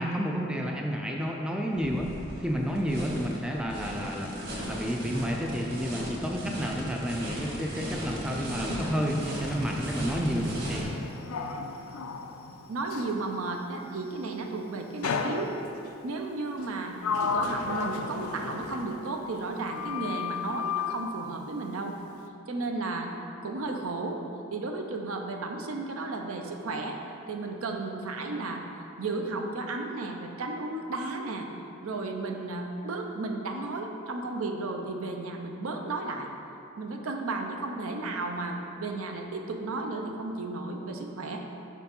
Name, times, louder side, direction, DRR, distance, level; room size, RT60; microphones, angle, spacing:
voice 1, 0.0-2.1 2.4-4.4 4.7-10.9, equal, 5° right, 0 dB, 0.3 m, -30 dB
sound 1, 1.7-10.8, equal, 45° right, 1.6 m, -36 dB
Sliding door, 9.2-13.2 15.0-15.9 16.6-19.4 19.7-21.0, left 5 dB, 80° left, 0.5 m, -34 dB
voice 2, 12.7-15.5 16.0-17.0 17.2-22.0 22.5-23.1 23.4-24.2 24.5-27.0 27.3-28.6 29.0-31.5 31.8-36.3 36.8-41.4, right 3 dB, 75° right, 3 dB, 0.6 m, -33 dB
6.0 x 4.6 x 5.3 m, 2.7 s
head